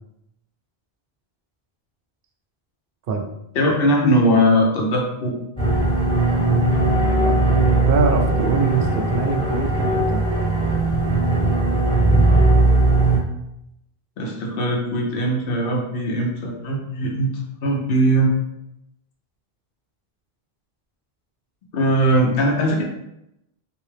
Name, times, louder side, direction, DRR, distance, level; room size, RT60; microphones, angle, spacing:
voice 1, 3.5-5.3 14.2-17.3 17.6-18.3 21.7-22.8, equal, 65° left, 0 dB, 0.9 m, -20 dB
sound 1, 5.6-13.2, right 2 dB, 5° left, 0.7 m, -18 dB
voice 2, 7.9-10.2, right 4 dB, 65° right, 3 dB, 0.7 m, -23 dB
3.4 x 2.6 x 3.2 m, 0.82 s
omnidirectional pair, 1.0 m